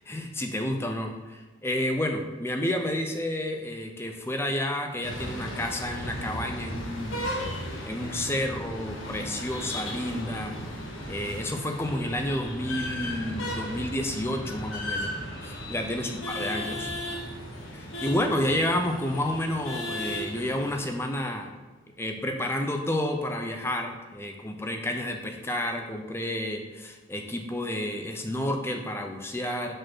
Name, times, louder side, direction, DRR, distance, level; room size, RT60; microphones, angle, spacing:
voice 1, 0.1-7.3 7.9-10.5 11.1-15.2 15.4-16.9 17.7-21.5 22.0-29.7, left 1 dB, 10° left, 4 dB, 0.5 m, -30 dB
sound 1, 5.0-20.8, equal, 75° left, 1.3 m, -35 dB
5.1 x 4.3 x 6.0 m, 1.2 s
head